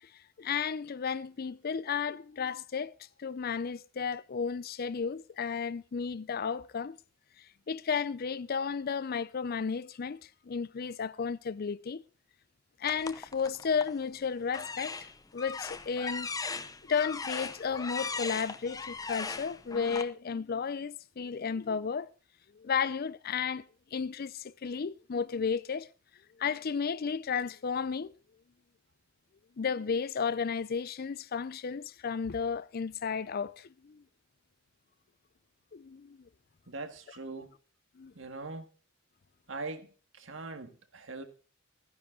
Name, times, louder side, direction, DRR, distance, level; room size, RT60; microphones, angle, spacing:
voice 1, 0.4-2.9 3.2-7.0 7.7-12.0 12.8-14.9 15.3-16.3 16.9-22.1 22.5-25.9 26.4-28.1 29.6-34.0 35.7-36.3 38.0-38.1, left 6 dB, 50° left, 0.5 m, -33 dB
sound 1, 12.9-14.0 14.5-20.0, left 4 dB, 20° left, 0.7 m, -38 dB
voice 2, 36.7-37.5 38.1-38.7 39.5-39.9 40.1-41.2, right 3 dB, 75° right, 1.7 m, -41 dB
15.0 x 10.5 x 3.7 m
head